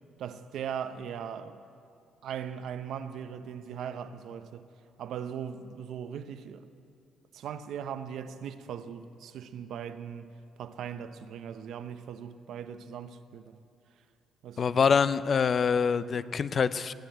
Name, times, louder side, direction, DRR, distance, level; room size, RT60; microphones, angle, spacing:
voice 1, 0.2-1.6 2.2-4.7 5.0-6.7 7.3-10.3 10.6-13.6 14.4-14.7, right 8 dB, 75° right, 0.7 m, -39 dB
voice 2, 14.6-16.9, left 6 dB, 45° left, 0.5 m, -25 dB
20.0 x 8.0 x 9.0 m
cardioid pair, 90°, 0 cm